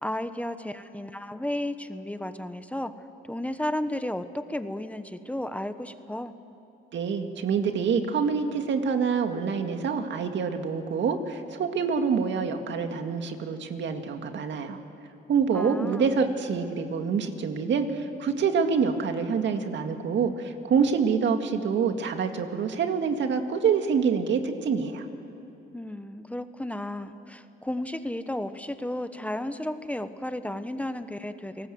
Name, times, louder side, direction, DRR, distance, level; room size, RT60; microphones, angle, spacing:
voice 1, 0.0-2.9 3.3-6.3 15.5-16.1 25.7-31.7, left 1 dB, 5° left, 10 dB, 1.1 m, -33 dB
voice 2, 6.9-14.8 15.3-25.1, right 6 dB, 65° right, 6 dB, 2.1 m, -26 dB
30.0 x 19.0 x 7.8 m, 2.8 s
cardioid pair, 90°, 20 cm